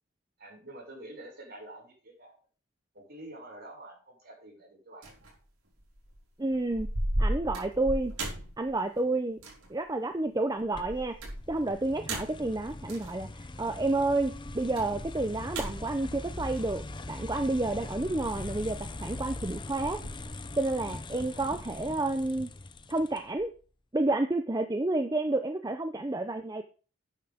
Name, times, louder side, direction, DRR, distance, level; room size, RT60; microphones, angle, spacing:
voice 1, 0.4-2.4 2.9-5.4 21.3-21.4, right 1 dB, 45° right, -1 dB, 6.5 m, -48 dB
sound 1, 5.0-5.4 5.8-6.2 6.5-9.1 9.4-9.7 10.6-13.2 14.4-17.0 18.1-19.0 19.4-20.3, right 1 dB, 80° right, 5.0 m, -36 dB
voice 2, 6.4-6.9 7.2-8.1 8.6-9.4 9.7-11.2 11.5-20.0 20.6-22.5 22.9-23.5 23.9-26.6, right 2 dB, 15° right, 7 dB, 0.6 m, -30 dB
sound 2, 10.8-23.5, left 2 dB, 20° left, 0.6 m, -41 dB
12.0 x 9.6 x 3.6 m, 0.37 s
head